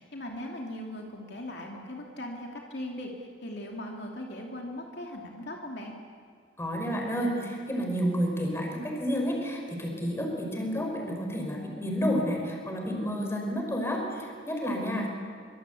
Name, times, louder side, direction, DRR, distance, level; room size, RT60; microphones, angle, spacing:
voice 1, 0.0-5.9, left 1 dB, 60° left, 0 dB, 2.8 m, -39 dB
voice 2, 6.6-15.1, equal, 15° left, 0 dB, 5.7 m, -30 dB
25.0 x 24.5 x 8.6 m, 2.1 s
head